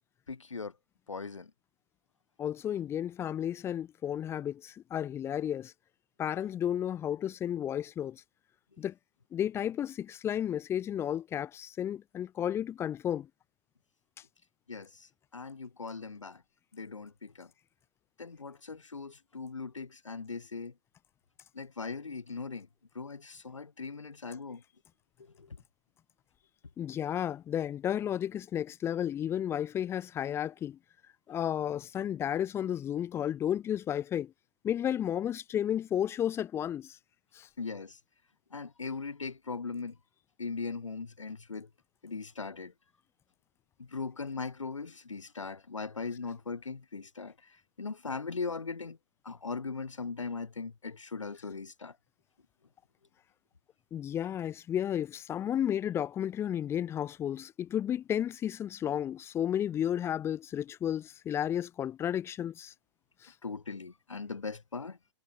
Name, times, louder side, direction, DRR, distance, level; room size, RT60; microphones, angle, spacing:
voice 1, 0.3-0.7 1.1-1.5 14.7-16.4 16.7-17.5 18.2-20.7 21.5-22.7 23.0-24.6 25.2-25.6 37.6-38.0 38.5-40.0 40.4-41.7 42.0-42.7 43.8-49.0 49.2-52.0 63.4-65.0, left 4 dB, 85° left, 6.8 m, -39 dB
voice 2, 2.4-5.7 6.2-8.2 8.8-8.9 9.3-13.3 26.8-30.8 31.3-34.3 34.6-37.0 37.3-37.5 53.9-62.7 63.2-63.3, left 10 dB, 15° left, 1.6 m, -32 dB
hypercardioid pair, 135°, 16 cm